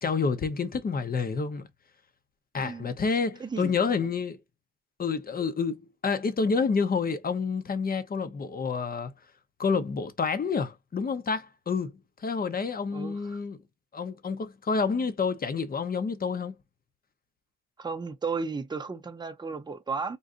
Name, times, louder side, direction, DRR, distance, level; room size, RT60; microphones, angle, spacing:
voice 1, 0.0-1.7 2.5-4.4 5.0-9.1 9.6-11.9 12.2-13.6 13.9-16.5, left 5 dB, 30° left, 0.7 m, -28 dB
voice 2, 2.6-2.9 3.4-3.8 12.9-13.4 17.8-20.2, right 4 dB, 15° right, 0.6 m, -34 dB
3.9 x 2.4 x 2.5 m
cardioid pair, 90°, 30 cm